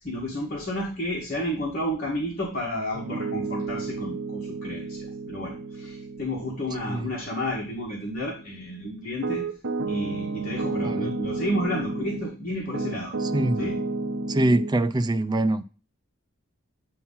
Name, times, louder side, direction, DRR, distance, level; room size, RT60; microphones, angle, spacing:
voice 1, 0.0-9.4 9.8-13.1 13.6-13.8, equal, 45° left, 1.8 m, -31 dB
Piano, 2.9-12.3 12.7-14.7, right 3 dB, 65° right, 0.8 m, -32 dB
voice 2, 10.8-11.1 13.2-13.6 14.3-15.6, right 2 dB, 20° right, 0.4 m, -24 dB
8.4 x 3.0 x 5.4 m
head